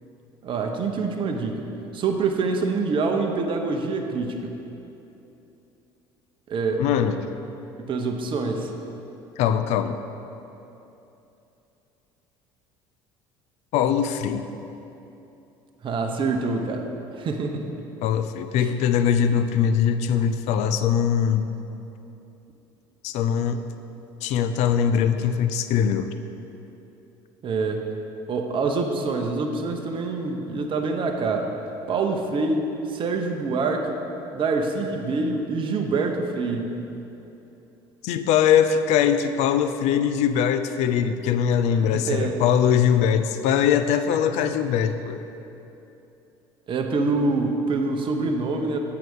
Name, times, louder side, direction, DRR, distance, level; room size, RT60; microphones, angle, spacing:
voice 1, 0.4-1.6 1.9-4.5 6.5-6.8 7.8-8.7 15.8-16.9 17.1-17.7 18.6-18.7 27.4-27.8 28.3-31.5 31.9-34.0 34.3-36.7 41.8-42.4 46.7-48.8, right 3 dB, 45° right, 3 dB, 0.8 m, -25 dB
voice 2, 6.8-7.2 9.4-10.0 13.7-14.5 18.0-21.5 23.0-23.6 24.2-26.1 38.0-45.2, left 8 dB, 65° left, 10 dB, 0.4 m, -21 dB
7.6 x 4.7 x 5.3 m, 2.9 s
hypercardioid pair, 70°, 12 cm